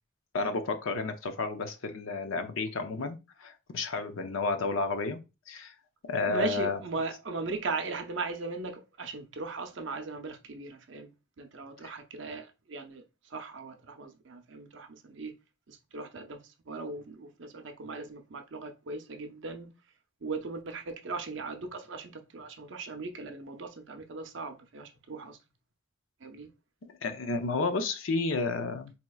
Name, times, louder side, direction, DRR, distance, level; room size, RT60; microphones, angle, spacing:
voice 1, 0.3-5.2 5.5-5.7 6.1-6.8 11.8-11.9 27.0-28.9, left 3 dB, 85° left, 0.6 m, -31 dB
voice 2, 6.3-11.1 11.4-13.0 13.3-15.3 15.7-19.7 20.2-25.4 26.2-26.5, right 3 dB, 65° right, 0.6 m, -38 dB
4.3 x 2.8 x 2.3 m
head